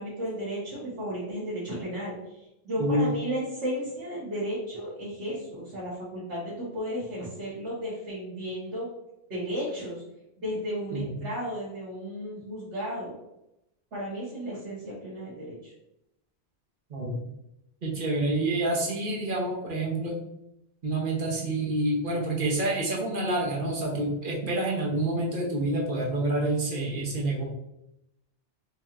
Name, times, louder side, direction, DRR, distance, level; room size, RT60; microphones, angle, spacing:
voice 1, 0.0-2.1 2.6-8.9 9.3-10.0 10.4-13.2 13.9-15.7, equal, 80° right, -9 dB, 1.4 m, -34 dB
voice 2, 17.8-20.2 20.8-27.4, right 2 dB, 50° right, -2 dB, 1.0 m, -28 dB
4.7 x 2.9 x 2.4 m, 0.86 s
omnidirectional pair, 1.1 m